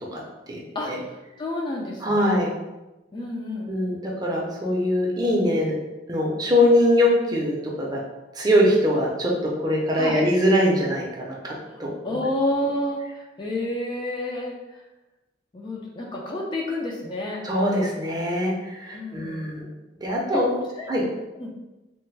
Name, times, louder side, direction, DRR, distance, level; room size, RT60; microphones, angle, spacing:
voice 1, 1.4-2.4 3.1-3.7 10.0-10.3 12.0-14.8 15.5-17.4 18.9-19.5 20.3-20.4 20.7-20.9 21.4-21.5, left 1 dB, 25° left, -2 dB, 0.4 m, -29 dB
voice 2, 2.0-2.5 3.7-5.7 6.1-8.0 8.3-11.9 17.4-19.7 20.0-20.6 20.9-21.0, left 1 dB, 20° right, -3 dB, 0.6 m, -22 dB
3.3 x 2.1 x 3.1 m, 1.0 s
head